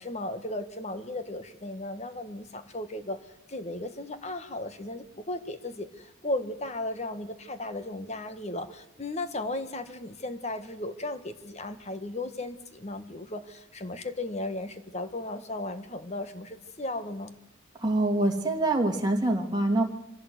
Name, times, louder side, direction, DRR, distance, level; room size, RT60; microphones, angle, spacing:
voice 1, 0.0-3.2 3.5-17.3, left 2 dB, 35° left, 10 dB, 1.6 m, -35 dB
voice 2, 17.8-19.8, right 2 dB, 20° right, 1 dB, 2.8 m, -25 dB
25.0 x 16.0 x 8.2 m, 0.86 s
head